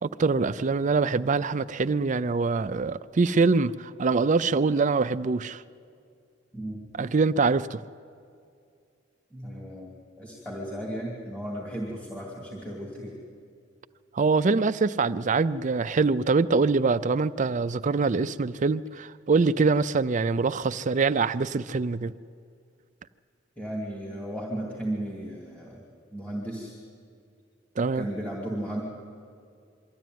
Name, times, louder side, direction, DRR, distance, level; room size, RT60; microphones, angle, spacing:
voice 1, 0.0-5.6 7.0-7.8 14.1-22.1 27.8-28.1, right 4 dB, 40° right, 0.4 m, -24 dB
voice 2, 9.3-13.2 23.6-26.7 27.9-28.8, right 1 dB, 10° left, 2.7 m, -35 dB
23.5 x 14.0 x 9.3 m
head